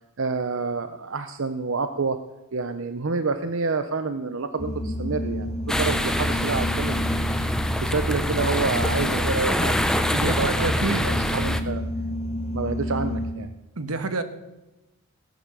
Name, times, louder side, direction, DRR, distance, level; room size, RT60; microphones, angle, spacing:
voice 1, 0.2-2.2 2.5-10.7 11.0-11.8 12.5-13.5, right 4 dB, 60° right, 9 dB, 0.7 m, -28 dB
sound 1, 4.6-13.3, left 1 dB, 30° left, 2.3 m, -30 dB
sound 2, 5.7-11.6, left 1 dB, 5° left, 0.7 m, -25 dB
voice 2, 10.1-11.1 13.8-14.2, right 3 dB, 85° right, 10 dB, 1.5 m, -28 dB
17.5 x 11.0 x 6.8 m, 1.0 s
head